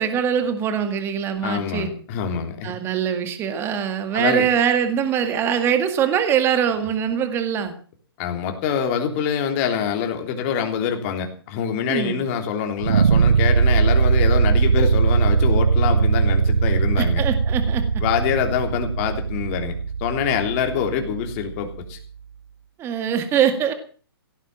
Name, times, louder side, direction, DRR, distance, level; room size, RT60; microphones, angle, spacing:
voice 1, 0.0-1.9 2.6-7.7 11.9-12.2 17.0-17.8 22.8-23.7, right 8 dB, 20° right, 8 dB, 2.0 m, -22 dB
voice 2, 1.4-2.7 4.1-4.5 8.2-17.2 18.0-22.0, left 8 dB, 30° left, 5 dB, 3.3 m, -25 dB
sound 1, 12.8-21.8, right 5 dB, 90° right, 0.9 m, -20 dB
16.5 x 9.8 x 7.4 m, 0.42 s
hypercardioid pair, 150°, 13 cm